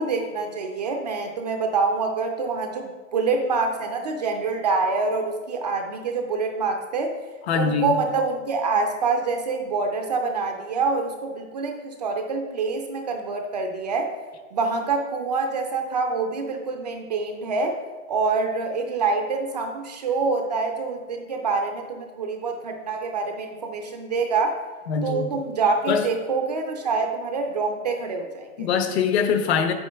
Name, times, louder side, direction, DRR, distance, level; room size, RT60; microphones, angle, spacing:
voice 1, 0.0-7.1 7.5-14.1 14.5-17.8 18.1-24.6 25.0-28.7, right 4 dB, 30° right, 4 dB, 0.4 m, -26 dB
voice 2, 7.5-8.0 24.9-25.3 25.9-26.1 28.6-29.7, left 6 dB, 50° left, 7 dB, 0.9 m, -23 dB
8.6 x 8.3 x 3.3 m, 1.4 s
hypercardioid pair, 160°, 42 cm